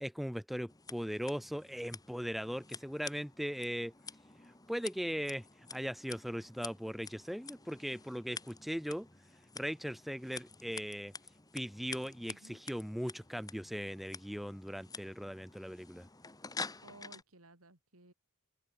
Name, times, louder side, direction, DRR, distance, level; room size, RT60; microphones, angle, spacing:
voice 1, 0.0-3.9 4.7-5.4 5.7-9.1 9.6-11.1 11.5-16.1, equal, ahead, 0.5 m, -39 dB
Scissors, 0.7-17.2, left 4 dB, 15° left, 1.9 m, -49 dB
voice 2, 12.3-12.6 16.8-18.1, right 2 dB, 80° right, 4.8 m, -57 dB
head